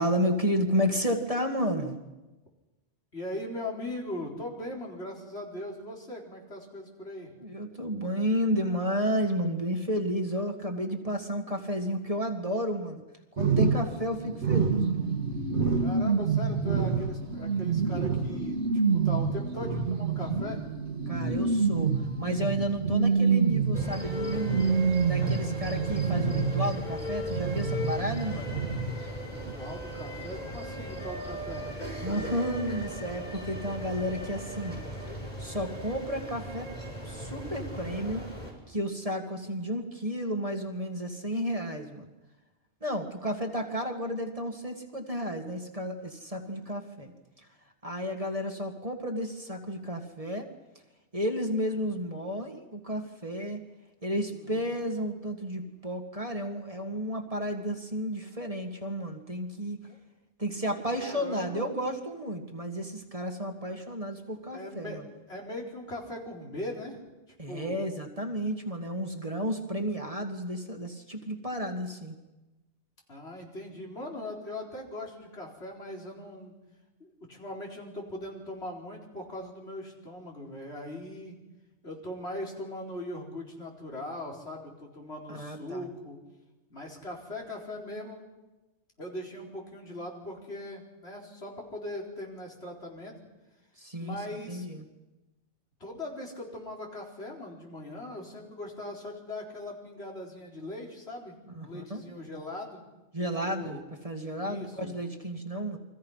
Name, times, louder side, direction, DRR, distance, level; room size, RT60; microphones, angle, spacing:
voice 1, 0.0-2.0 7.4-13.0 13.3-15.0 21.1-21.9 22.2-24.7 25.1-28.6 32.0-34.8 35.1-36.7 37.0-38.3 38.7-42.1 42.8-47.1 47.8-50.5 51.1-53.6 54.0-59.8 60.4-65.1 67.4-72.2 85.3-85.9 93.8-94.2 94.5-94.9 101.6-102.0 103.1-103.8 104.0-105.8, equal, 30° right, 4 dB, 2.1 m, -32 dB
voice 2, 3.1-7.3 15.8-20.6 29.2-31.7 54.3-54.8 59.9-60.0 60.9-61.7 64.5-65.0 65.3-67.0 67.5-67.8 73.1-76.6 77.0-81.4 81.8-86.2 86.7-88.2 89.0-93.1 94.0-94.7 95.8-102.8 103.5-103.8 104.4-104.9, left 1 dB, 65° left, -1 dB, 4.6 m, -40 dB
sound 1, 13.4-27.0 27.3-29.2 29.5-29.6, right 5 dB, 80° right, 2.1 m, -27 dB
sound 2, 23.7-38.5, equal, 40° left, 6.1 m, -38 dB
29.5 x 23.5 x 5.7 m, 1.1 s
omnidirectional pair, 1.2 m